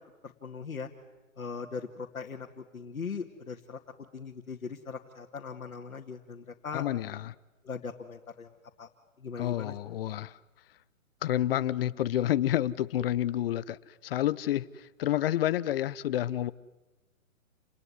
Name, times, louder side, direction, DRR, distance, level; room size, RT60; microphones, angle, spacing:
voice 1, 0.2-0.9 1.4-2.5 2.7-3.8 4.1-6.8 7.6-8.5 8.8-8.9 9.2-9.7, left 5 dB, 90° left, 2.5 m, -39 dB
voice 2, 6.7-7.3 9.4-10.4 11.2-16.5, left 12 dB, 45° left, 1.0 m, -29 dB
29.5 x 20.0 x 9.7 m
hypercardioid pair, 140°, 41 cm